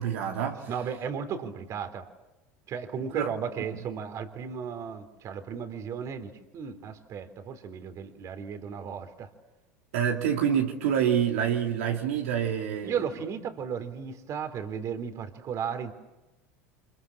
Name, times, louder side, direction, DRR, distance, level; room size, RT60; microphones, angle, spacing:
voice 1, 0.0-0.7 3.1-3.3 9.9-12.9, right 8 dB, 70° right, 2.9 m, -27 dB
voice 2, 0.7-2.1 2.7-9.3 12.8-15.9, right 7 dB, 45° right, 3.6 m, -35 dB
29.0 x 27.0 x 7.3 m
hypercardioid pair, 85°, 7 cm